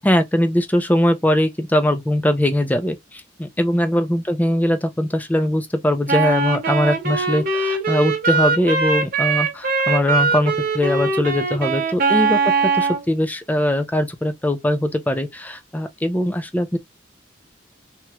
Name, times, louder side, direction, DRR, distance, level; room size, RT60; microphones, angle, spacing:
voice 1, 0.0-16.8, left 1 dB, 10° left, 0.4 m, -21 dB
Wind instrument woodwind instrument, 6.1-13.0, right 4 dB, 50° right, 0.9 m, -21 dB
3.0 x 2.9 x 2.2 m
head